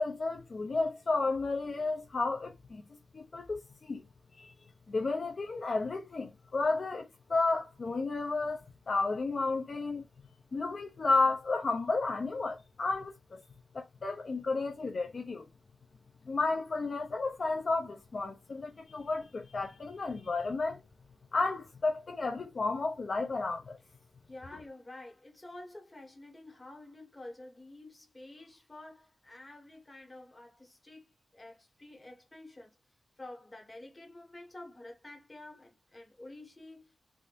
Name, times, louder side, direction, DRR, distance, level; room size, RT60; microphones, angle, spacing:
voice 1, 0.0-2.8 3.1-4.0 4.4-4.5 4.9-10.0 10.5-13.4 13.7-15.5 16.3-20.8 21.3-23.8, left 3 dB, 50° left, 0.5 m, -32 dB
voice 2, 24.3-32.7 33.2-36.9, left 2 dB, 20° left, 1.4 m, -49 dB
3.4 x 2.5 x 2.5 m
wide cardioid pair, 105°, 0 cm